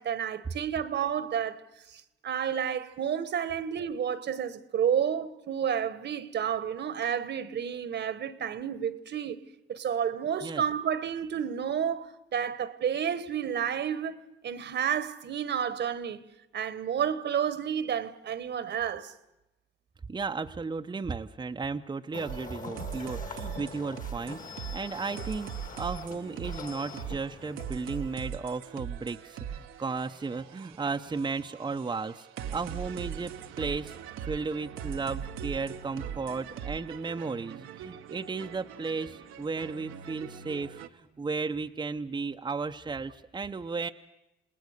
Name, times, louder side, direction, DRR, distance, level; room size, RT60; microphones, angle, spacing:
voice 1, 0.0-9.4 9.7-16.2 16.5-19.1, right 8 dB, 60° right, 1.3 m, -31 dB
voice 2, 20.1-25.5 25.8-34.0 34.2-43.9, right 4 dB, 20° right, 0.7 m, -34 dB
sound 1, 22.1-28.3, left 4 dB, 40° left, 2.1 m, -44 dB
sound 2, 22.3-40.9, right 9 dB, 90° right, 1.2 m, -41 dB
28.5 x 19.5 x 6.6 m
cardioid pair, 90°, 20 cm